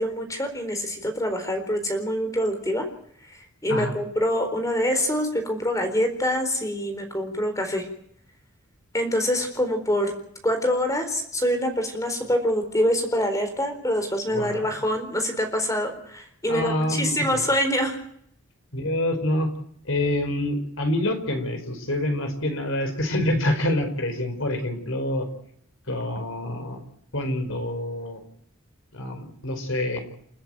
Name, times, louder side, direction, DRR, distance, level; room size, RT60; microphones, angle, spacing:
voice 1, 0.0-2.9 3.3-7.9 8.9-10.1 10.4-18.0, equal, 15° left, 6 dB, 4.1 m, -25 dB
voice 2, 14.3-14.7 16.5-17.4 18.7-19.5 19.9-25.3 25.9-26.8 27.1-28.2 28.9-30.0, left 1 dB, 65° left, 7 dB, 4.8 m, -26 dB
29.5 x 11.0 x 9.2 m, 0.70 s
head